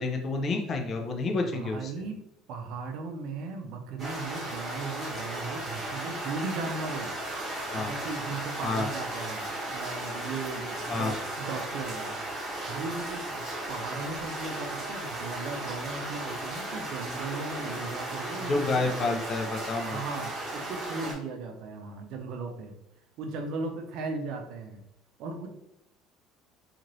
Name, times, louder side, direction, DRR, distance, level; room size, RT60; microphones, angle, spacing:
voice 1, 0.0-1.9 7.7-7.9 8.6-8.9 10.9-11.1 18.4-20.0, left 3 dB, 35° left, 3 dB, 0.4 m, -29 dB
voice 2, 1.4-2.2 2.5-7.1 7.7-12.2 12.6-18.9 19.9-22.8 23.2-24.8 25.2-25.5, right 4 dB, 65° right, 4 dB, 0.5 m, -37 dB
sound 1, 4.0-21.1, right 1 dB, 35° right, 1.1 m, -36 dB
3.0 x 2.5 x 2.6 m, 0.81 s
cardioid pair, 130°, 0 cm